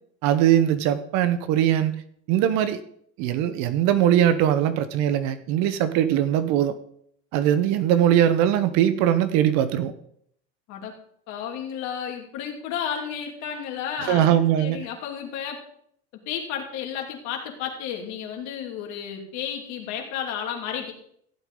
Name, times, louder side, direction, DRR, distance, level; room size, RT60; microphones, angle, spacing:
voice 1, 0.2-2.0 2.3-2.8 3.2-6.7 7.3-9.9 14.0-14.9, right 11 dB, 60° right, 1.0 m, -21 dB
voice 2, 11.3-15.6 16.3-20.9, left 8 dB, 60° left, 2.7 m, -32 dB
15.0 x 8.3 x 3.8 m
supercardioid pair, 100°, 32 cm